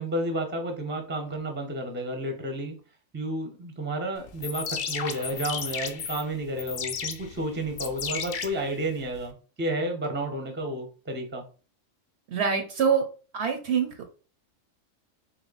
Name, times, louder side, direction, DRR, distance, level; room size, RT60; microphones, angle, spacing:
voice 1, 0.0-2.8 3.1-11.4, right 1 dB, 10° right, 4 dB, 0.6 m, -31 dB
sound 1, 4.3-9.3, left 7 dB, 60° left, 0.5 m, -34 dB
voice 2, 12.3-13.1 13.3-14.1, right 6 dB, 60° right, 6 dB, 0.8 m, -25 dB
3.2 x 3.0 x 3.9 m, 0.37 s
omnidirectional pair, 1.4 m